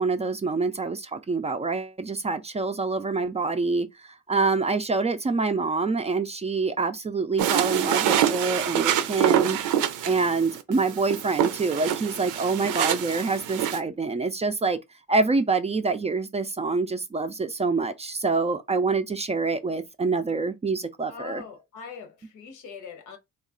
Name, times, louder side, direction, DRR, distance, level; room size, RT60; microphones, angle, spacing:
voice 1, 0.0-9.6 10.0-14.8 15.1-21.4, right 4 dB, 20° right, 0.4 m, -26 dB
sound 1, 7.4-13.8, right 10 dB, 85° right, 0.5 m, -26 dB
voice 2, 21.1-23.2, left 6 dB, 80° left, 1.0 m, -42 dB
3.1 x 2.4 x 3.6 m
cardioid pair, 90°, 30 cm